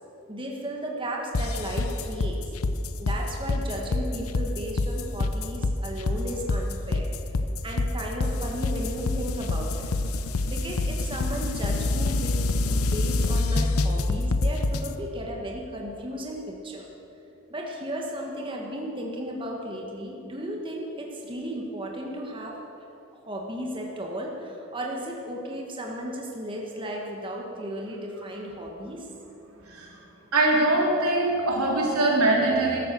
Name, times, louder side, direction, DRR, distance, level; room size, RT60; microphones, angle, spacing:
voice 1, 0.3-2.4 3.0-7.1 7.6-9.9 10.5-12.4 12.7-16.9 17.5-22.6 23.2-29.1, equal, 25° right, -1 dB, 1.5 m, -34 dB
sound 1, 1.3-14.9, left 2 dB, 80° left, 0.7 m, -26 dB
voice 2, 30.3-32.8, right 2 dB, 90° right, -2 dB, 3.6 m, -22 dB
13.5 x 12.5 x 6.8 m, 2.9 s
head